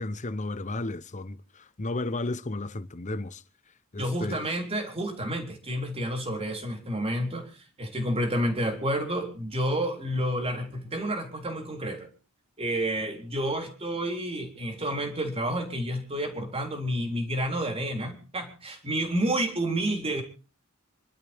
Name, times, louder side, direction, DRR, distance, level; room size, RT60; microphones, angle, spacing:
voice 1, 0.0-3.4 3.9-4.5, left 2 dB, 35° left, 0.9 m, -33 dB
voice 2, 4.0-12.1 12.6-20.2, right 1 dB, 30° right, 3.8 m, -30 dB
28.0 x 12.0 x 3.6 m
head